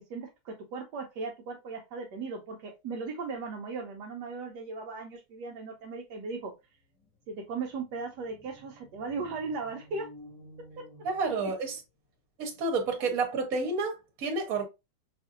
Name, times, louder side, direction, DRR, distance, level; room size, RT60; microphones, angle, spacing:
voice 1, 0.1-6.5 7.3-10.1 11.2-11.5, right 4 dB, 75° right, 1.2 m, -37 dB
sound 1, 6.8-11.9, equal, 85° left, 2.4 m, -53 dB
voice 2, 11.0-11.8 12.4-14.6, right 3 dB, 55° right, 1.4 m, -30 dB
5.5 x 2.5 x 2.5 m
omnidirectional pair, 1.9 m